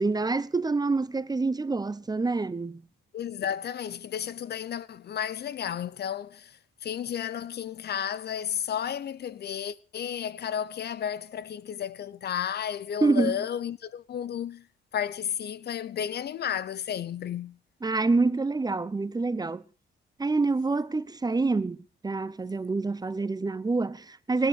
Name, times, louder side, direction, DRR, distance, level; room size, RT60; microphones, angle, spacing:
voice 1, 0.0-2.8 13.0-13.4 17.8-19.6 20.2-21.8 22.0-24.5, right 3 dB, 20° right, 1.0 m, -26 dB
voice 2, 3.1-14.7 14.9-17.6, left 9 dB, 55° left, 0.8 m, -33 dB
21.5 x 9.7 x 6.7 m
cardioid pair, 90°, 20 cm